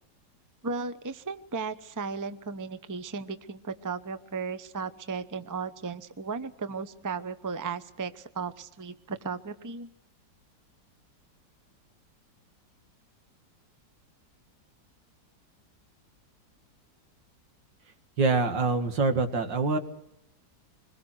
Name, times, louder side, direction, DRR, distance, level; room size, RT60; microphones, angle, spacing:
voice 1, 0.6-9.9, right 5 dB, 20° right, 11 dB, 0.5 m, -35 dB
voice 2, 18.2-19.8, right 4 dB, 90° right, 6 dB, 2.6 m, -25 dB
26.0 x 21.5 x 6.2 m, 0.80 s
omnidirectional pair, 1.9 m